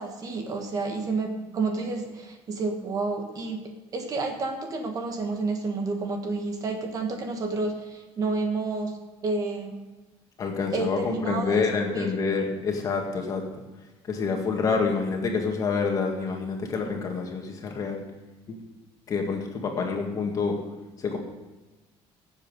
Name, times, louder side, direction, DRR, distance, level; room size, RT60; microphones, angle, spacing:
voice 1, 0.0-3.6 3.9-9.0 9.2-9.7 10.7-12.1, right 3 dB, 35° right, 4 dB, 1.6 m, -30 dB
voice 2, 10.4-13.4 14.1-18.0 18.5-18.6 19.1-20.6 21.0-21.2, left 4 dB, 30° left, 2 dB, 1.9 m, -27 dB
17.0 x 7.6 x 5.3 m, 1.2 s
cardioid pair, 165°, 11 cm